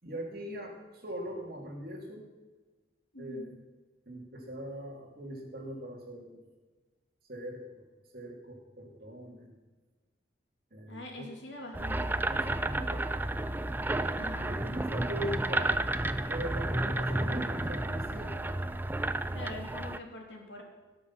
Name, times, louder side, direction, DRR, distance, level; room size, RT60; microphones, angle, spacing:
voice 1, 0.0-2.3 3.2-3.6 4.1-6.5 7.3-7.8 8.1-9.5 10.7-11.3 12.3-13.1 14.4-15.8 16.3-18.5, equal, 50° right, 0 dB, 2.7 m, -41 dB
voice 2, 3.1-3.5 10.9-12.2 14.2-14.5 19.3-20.6, left 1 dB, 80° left, 1 dB, 2.9 m, -44 dB
sound 1, 11.7-20.0, right 2 dB, 10° right, 0.4 m, -31 dB
17.5 x 6.2 x 6.0 m, 1.3 s
head